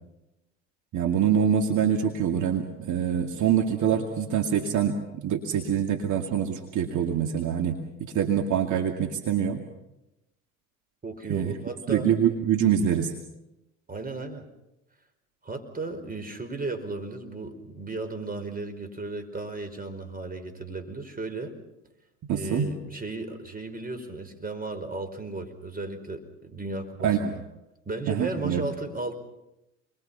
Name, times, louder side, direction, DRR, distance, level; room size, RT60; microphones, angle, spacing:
voice 1, 0.9-9.6 11.3-11.5 11.9-13.1 22.3-22.7 27.0-27.3 28.1-28.6, right 8 dB, 55° right, 5 dB, 2.5 m, -25 dB
voice 2, 11.0-12.1 13.9-14.4 15.4-21.5 22.3-27.4 27.8-29.2, right 2 dB, 25° right, 8 dB, 5.1 m, -35 dB
29.0 x 23.0 x 5.7 m, 0.90 s
hypercardioid pair, 80°, 36 cm